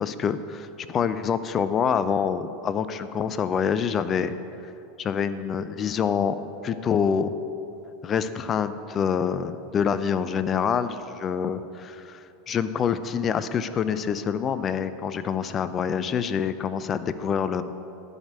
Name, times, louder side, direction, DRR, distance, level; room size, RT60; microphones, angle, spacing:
voice 1, 0.0-4.3 5.0-6.4 6.6-7.3 8.0-12.2 12.5-17.6, left 7 dB, 35° left, 12 dB, 0.6 m, -26 dB
10.5 x 5.4 x 8.4 m, 2.9 s
hypercardioid pair, 90°, 0 cm